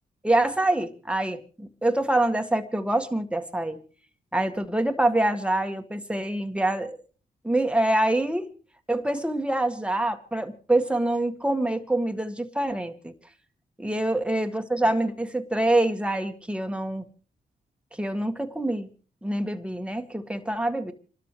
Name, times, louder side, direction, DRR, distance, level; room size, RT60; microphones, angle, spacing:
voice 1, 0.2-3.8 4.3-7.0 7.4-8.5 8.9-13.1 13.8-17.0 18.0-18.9 19.2-20.9, right 1 dB, 5° right, 7 dB, 1.7 m, -25 dB
28.0 x 12.5 x 3.2 m, 0.37 s
cardioid pair, 55°, 17 cm